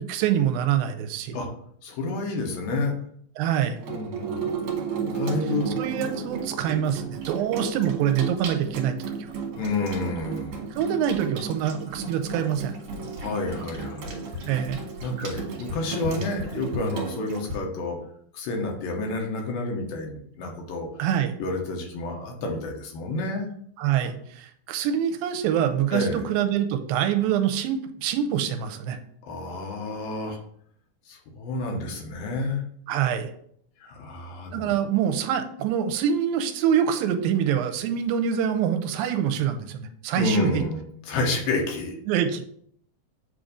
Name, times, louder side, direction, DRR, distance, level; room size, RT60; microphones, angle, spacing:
voice 1, 0.0-1.4 3.4-3.8 5.8-8.9 10.7-12.7 14.5-14.8 21.0-21.3 23.8-29.0 32.9-33.3 34.5-40.6 42.1-42.4, right 9 dB, 85° right, 7 dB, 2.4 m, -25 dB
voice 2, 1.8-2.9 3.9-4.4 5.1-5.7 9.5-10.6 13.2-14.4 15.0-18.0 18.3-20.9 21.4-23.5 25.9-26.2 29.2-30.4 31.1-32.6 33.8-34.7 40.2-42.0, left 2 dB, 80° left, 1 dB, 2.7 m, -29 dB
Water tap faucet / Sink (filling or washing), 3.8-17.6, right 4 dB, 70° right, 2.5 m, -33 dB
7.5 x 2.6 x 4.9 m, 0.65 s
omnidirectional pair, 4.1 m